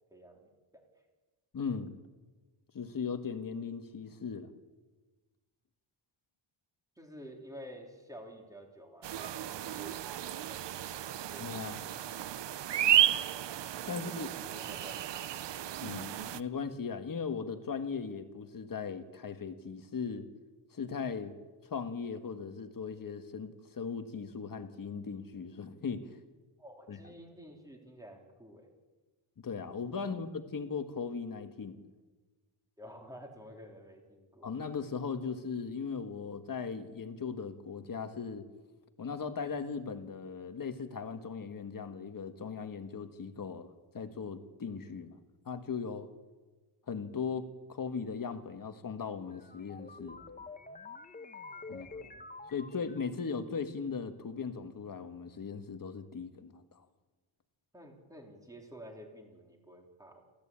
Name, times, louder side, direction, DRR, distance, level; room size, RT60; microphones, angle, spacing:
voice 1, 0.1-0.8 7.0-11.0 14.5-14.9 26.6-28.7 29.9-30.2 32.8-34.6 51.7-52.3 57.7-60.2, equal, 5° right, 1 dB, 3.8 m, -51 dB
voice 2, 1.5-1.9 2.7-4.5 11.4-11.8 13.8-14.3 15.8-20.3 20.7-21.4 21.7-26.1 26.9-27.0 29.4-31.9 34.4-38.5 39.0-45.2 45.4-46.1 46.9-50.2 51.7-51.9 52.5-56.8, left 5 dB, 40° left, 8 dB, 1.6 m, -38 dB
sound 1, 9.0-16.4, right 11 dB, 60° right, 0.8 m, -33 dB
sound 2, 49.2-53.4, left 3 dB, 15° left, 1.1 m, -48 dB
28.5 x 14.0 x 8.8 m, 1.3 s
wide cardioid pair, 170°, 49 cm